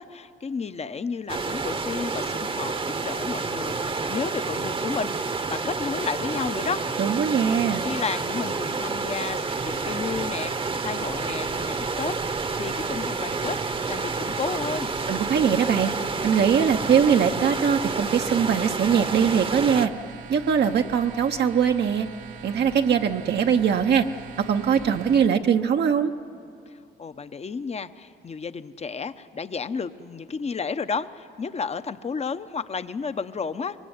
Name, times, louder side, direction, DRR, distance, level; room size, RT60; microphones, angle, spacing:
voice 1, 0.0-6.8 7.4-14.9 27.0-33.8, left 5 dB, 35° left, 12 dB, 0.9 m, -32 dB
sound 1, 1.3-19.9, right 4 dB, 25° right, 1.0 m, -29 dB
voice 2, 7.0-7.9 15.1-15.9 16.2-19.9 20.3-22.1 22.4-24.1 24.5-26.1, right 7 dB, 60° right, 4 dB, 0.9 m, -21 dB
sound 2, 9.2-25.3, right 7 dB, 75° right, 1.5 m, -43 dB
24.0 x 22.0 x 9.6 m, 2.6 s
cardioid pair, 90°, 20 cm